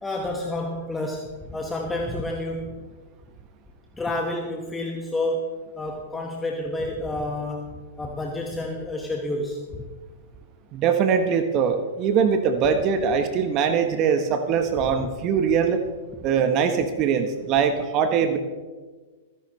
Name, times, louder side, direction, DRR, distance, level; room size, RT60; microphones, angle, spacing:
voice 1, 0.0-2.8 3.9-9.8 15.0-15.1, left 1 dB, 10° left, 1 dB, 1.5 m, -30 dB
voice 2, 10.7-15.8 16.2-18.4, right 6 dB, 40° right, 8 dB, 1.2 m, -22 dB
25.5 x 10.5 x 3.2 m, 1.4 s
hypercardioid pair, 105°, 0 cm